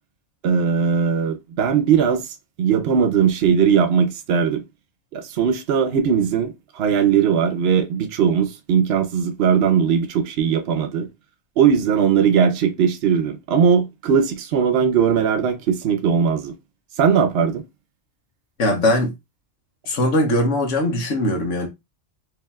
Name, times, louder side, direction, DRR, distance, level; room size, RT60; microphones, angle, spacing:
voice 1, 0.4-2.3 2.6-4.6 5.1-11.1 11.6-16.5 17.0-17.6, right 7 dB, 65° right, 0.8 m, -19 dB
voice 2, 18.6-19.1 19.9-21.7, left 1 dB, 80° left, 1.4 m, -20 dB
4.8 x 2.8 x 2.3 m
omnidirectional pair, 1.2 m